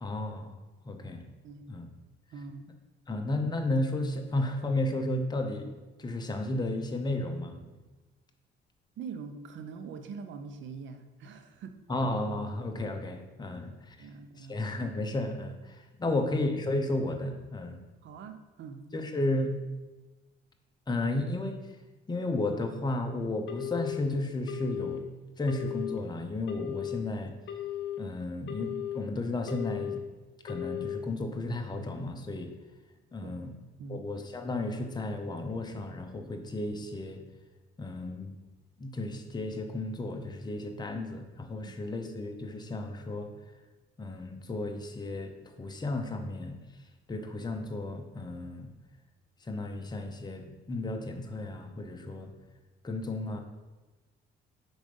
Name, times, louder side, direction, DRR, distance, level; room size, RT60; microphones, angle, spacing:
voice 1, 0.0-0.6 0.8-1.2 1.7-1.9 3.1-7.7 11.9-14.1 14.4-17.8 18.9-19.5 20.9-21.7 22.1-25.1 25.4-27.4 28.0-30.0 30.4-32.5 33.1-33.5 33.9-37.2 37.8-38.3 38.8-43.3 44.0-46.6 47.1-48.7 49.4-52.3 52.8-53.4, left 2 dB, 20° left, 4 dB, 0.7 m, -33 dB
voice 2, 2.3-2.6 9.0-11.8 13.4-13.5 14.0-14.6 16.1-16.2 18.0-18.8 33.2-33.4 33.8-34.1, right 5 dB, 70° right, 7 dB, 0.7 m, -43 dB
Telephone, 23.5-24.0 24.5-25.0 25.5-26.0 26.5-27.0 27.5-28.0 28.5-29.0 29.5-30.0 30.5-31.0, left 12 dB, 75° left, 0.8 m, -36 dB
4.9 x 3.9 x 5.3 m, 1.1 s
cardioid pair, 90°, 20 cm